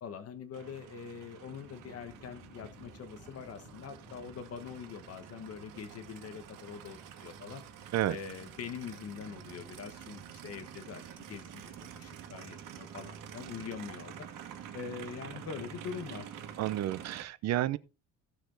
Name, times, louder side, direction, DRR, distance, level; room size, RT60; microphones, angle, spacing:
voice 1, 0.0-7.6 8.1-14.1 14.7-16.3, left 7 dB, 45° left, 1.2 m, -44 dB
Aircraft, 0.5-17.2, right 8 dB, 65° right, 2.2 m, -48 dB
sound 1, 1.4-17.0, left 2 dB, 30° left, 2.4 m, -61 dB
voice 2, 16.6-17.8, right 14 dB, 50° right, 0.7 m, -30 dB
15.0 x 6.8 x 3.9 m
cardioid pair, 165°, 34 cm